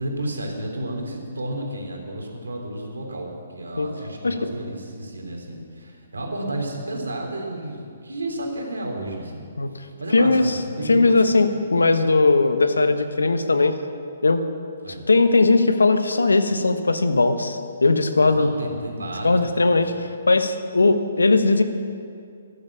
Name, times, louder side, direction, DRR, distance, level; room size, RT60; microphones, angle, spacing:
voice 1, 0.0-9.5 9.7-11.4 14.8-15.0 18.3-19.9, right 1 dB, 85° right, 1 dB, 3.2 m, -32 dB
voice 2, 10.1-10.6 10.9-13.7 14.2-14.4 15.1-18.5 19.2-21.6, left 3 dB, 85° left, 9 dB, 1.2 m, -19 dB
14.0 x 12.0 x 7.3 m, 2.4 s
figure-of-eight pair, 135°, 0 cm